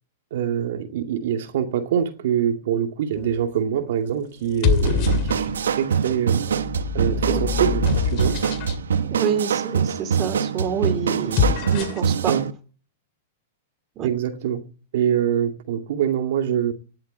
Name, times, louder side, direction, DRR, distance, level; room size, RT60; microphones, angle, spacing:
voice 1, 0.3-6.5 6.9-8.4 12.3-12.5 14.0-14.6 14.9-16.7, right 9 dB, 70° right, 2.4 m, -24 dB
sound 1, 3.2-3.6 4.4-5.8 6.5-8.8 11.2-12.1, left 7 dB, 45° left, 2.3 m, -25 dB
sound 2, 4.8-12.5, right 7 dB, 90° right, 1.0 m, -24 dB
voice 2, 9.1-12.3 14.0-14.1, right 7 dB, 35° right, 2.9 m, -27 dB
19.0 x 7.8 x 8.3 m
hypercardioid pair, 125°, 0 cm